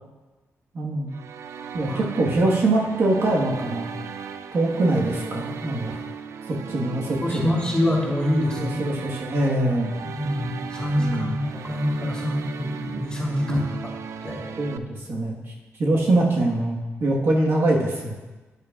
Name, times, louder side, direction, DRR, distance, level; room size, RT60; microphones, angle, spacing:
voice 1, 0.7-1.1 1.7-3.9 4.5-6.0 6.5-7.5 8.6-9.9 11.0-11.4 13.5-13.6 14.6-15.5 15.8-18.1, right 2 dB, 55° right, -2 dB, 1.4 m, -23 dB
sound 1, 1.1-14.8, right 7 dB, 80° right, 0.4 m, -37 dB
voice 2, 7.2-8.8 10.1-13.6 14.2-14.5, left 1 dB, 15° left, -5 dB, 3.0 m, -25 dB
10.5 x 9.8 x 2.4 m, 1.2 s
cardioid pair, 105°, 5 cm